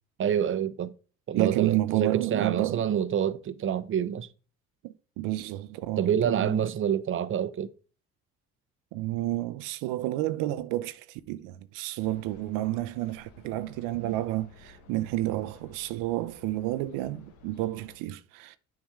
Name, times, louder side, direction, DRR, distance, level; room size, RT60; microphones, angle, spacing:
voice 1, 0.2-0.9 1.3-4.3 6.0-7.7, right 9 dB, 40° right, 0.8 m, -27 dB
voice 2, 1.3-2.8 4.8-6.7 8.9-18.6, right 16 dB, 85° right, 0.6 m, -30 dB
sound 1, 12.0-18.0, left 3 dB, 70° left, 1.6 m, -55 dB
7.2 x 6.0 x 3.6 m
supercardioid pair, 80°, 31 cm